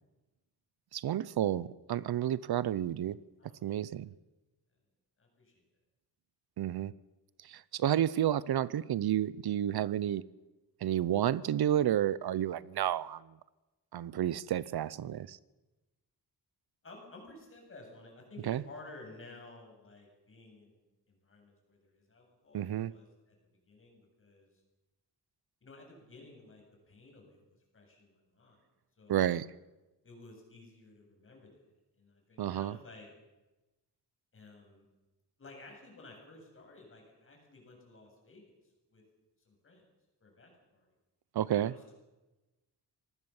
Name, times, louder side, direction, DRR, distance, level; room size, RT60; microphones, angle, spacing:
voice 1, 0.9-3.2 3.6-4.1 6.6-6.9 7.4-10.2 10.8-13.2 13.9-15.4 18.4-18.6 22.5-22.9 29.1-29.5 32.4-32.8 41.3-41.7, right 11 dB, 75° right, 19 dB, 0.8 m, -31 dB
voice 2, 3.4-3.8 5.2-5.6 16.8-20.8 21.1-23.4 23.7-24.5 25.6-28.6 29.0-29.2 30.0-31.5 32.0-33.1 34.3-34.9 35.4-38.5 38.9-39.0 39.5-39.8 40.2-40.9 41.5-41.8, left 2 dB, 35° left, 1 dB, 7.8 m, -54 dB
25.5 x 19.0 x 7.2 m, 1.1 s
wide cardioid pair, 180°, 38 cm